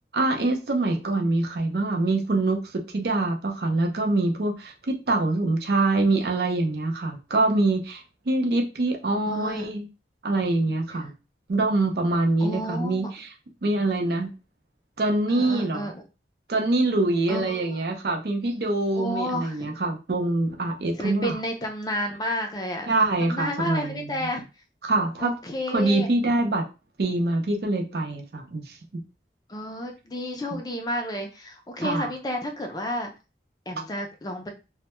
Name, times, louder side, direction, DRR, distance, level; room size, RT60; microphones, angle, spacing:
voice 1, 0.1-9.9 10.2-11.1 11.5-13.3 13.6-14.3 15.0-15.9 16.5-21.3 22.9-24.2 24.8-25.3 25.7-26.6 27.0-28.8 30.5-30.6 31.8-32.1, right 2 dB, 60° right, 3 dB, 0.5 m, -24 dB
voice 2, 9.3-9.7 12.4-13.1 15.3-16.0 17.3-17.8 18.9-19.7 21.0-22.9 23.2-24.4 25.2-26.1 29.5-33.1 33.7-34.5, left 1 dB, 20° left, 3 dB, 0.4 m, -31 dB
2.1 x 2.1 x 2.9 m, 0.30 s
head